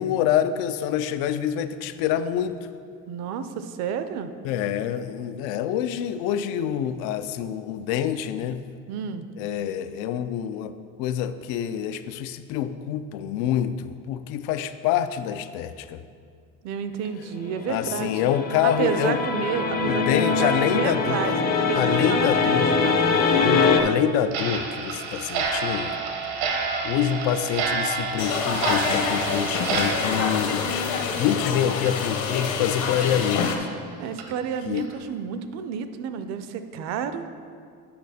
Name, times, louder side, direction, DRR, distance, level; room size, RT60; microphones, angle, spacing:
voice 1, 0.0-2.6 4.4-8.6 9.4-16.0 17.7-19.2 19.8-21.4 21.8-22.8 23.3-26.0 26.8-30.8 31.2-33.7 34.7-34.9, left 10 dB, 85° left, 11 dB, 0.5 m, -26 dB
voice 2, 3.1-4.3 8.9-9.3 16.6-18.1 18.6-23.1 34.0-37.3, right 7 dB, 50° right, 10 dB, 0.4 m, -30 dB
sound 1, 17.3-23.8, left 4 dB, 25° left, 0.4 m, -23 dB
Clock, 24.3-31.5 31.8-31.9 32.4-32.5 33.0-33.1 33.6-33.7 34.2-34.3 34.8-34.9, right 4 dB, 90° right, 1.2 m, -29 dB
sound 2, 28.2-33.6, left 5 dB, 50° left, 0.8 m, -27 dB
8.5 x 5.7 x 4.1 m, 2.2 s
cardioid pair, 175°, 36 cm